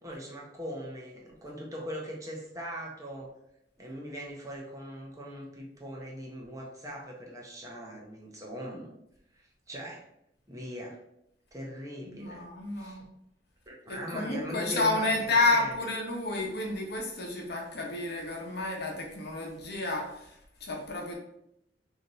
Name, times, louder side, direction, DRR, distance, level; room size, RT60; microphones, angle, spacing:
voice 1, 0.0-3.3 3.8-8.9 9.3-10.0 10.5-11.0 11.5-12.5 12.7-13.0 13.7-15.9, equal, 20° right, -2 dB, 0.8 m, -40 dB
voice 2, 12.1-13.0 13.9-21.1, left 2 dB, 60° left, 0 dB, 0.9 m, -30 dB
3.3 x 2.7 x 3.9 m, 0.78 s
head